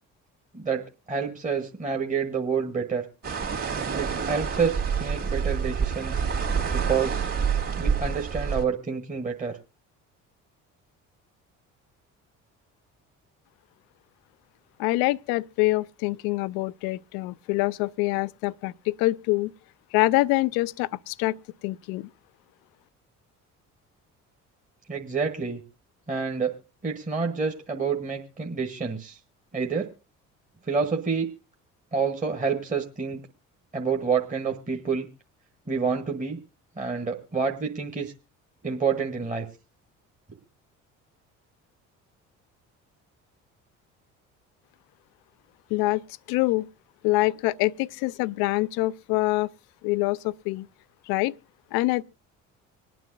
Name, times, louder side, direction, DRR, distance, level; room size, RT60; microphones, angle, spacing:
voice 1, 0.5-3.0 3.9-6.2 6.7-7.3 7.8-9.6 24.9-25.6 26.1-26.5 26.8-29.2 29.5-29.9 30.7-31.3 31.9-33.2 33.7-35.1 35.7-36.4 36.8-38.1 38.6-39.4, right 5 dB, 20° right, 1.3 m, -28 dB
sound 1, 3.2-8.6, right 6 dB, 40° right, 2.3 m, -27 dB
voice 2, 14.8-19.5 19.9-21.4 21.6-22.1 45.7-46.0 46.3-46.7 47.0-49.5 49.8-50.7 51.1-51.3 51.7-52.0, left 20 dB, 70° left, 0.5 m, -25 dB
25.5 x 9.3 x 2.6 m
hypercardioid pair, 60°, 38 cm